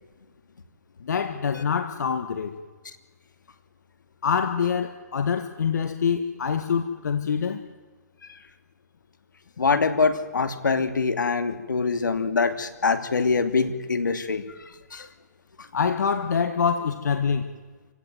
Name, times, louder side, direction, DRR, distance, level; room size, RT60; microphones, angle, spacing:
voice 1, 1.0-2.5 4.2-7.6 15.7-17.5, left 6 dB, 65° left, 8 dB, 1.8 m, -25 dB
voice 2, 9.6-14.4 14.9-15.1, left 4 dB, 85° left, 9 dB, 2.6 m, -24 dB
28.0 x 16.5 x 9.4 m, 1.3 s
hypercardioid pair, 150°, 10 cm